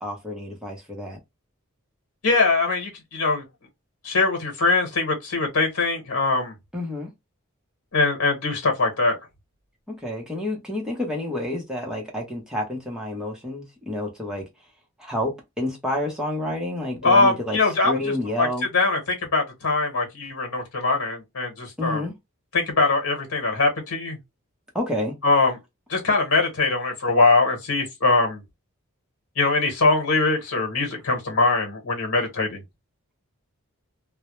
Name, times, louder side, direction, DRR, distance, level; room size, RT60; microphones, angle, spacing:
voice 1, 0.0-1.2 6.7-7.1 9.9-14.4 15.0-17.6 17.8-18.7 21.8-22.1 24.7-25.2, left 1 dB, 5° right, 0.6 m, -29 dB
voice 2, 2.2-3.4 4.0-6.5 7.9-9.2 17.0-18.5 18.7-22.1 22.5-24.2 25.2-25.6 25.9-28.4 29.4-32.6, left 3 dB, 85° left, 1.0 m, -22 dB
2.1 x 2.0 x 2.9 m
head